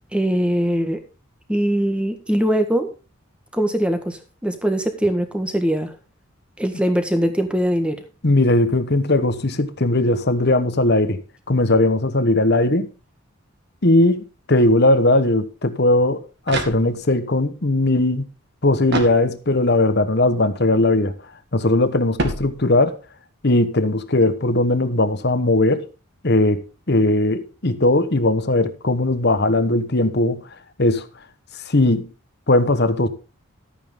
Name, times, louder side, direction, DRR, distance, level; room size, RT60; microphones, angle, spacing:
voice 1, 0.1-1.0 1.5-2.9 3.5-5.9 6.6-8.0, equal, 5° right, 1.5 m, -21 dB
voice 2, 8.2-11.2 11.5-12.9 13.8-16.2 16.5-18.2 18.6-21.1 21.5-23.0 23.4-25.8 26.2-30.4 30.8-31.0 31.5-32.1 32.5-33.1, left 2 dB, 50° left, 1.2 m, -18 dB
sound 1, 16.0-17.3 18.9-19.8 22.2-23.1, right 1 dB, 50° right, 2.2 m, -29 dB
13.0 x 9.0 x 3.8 m
head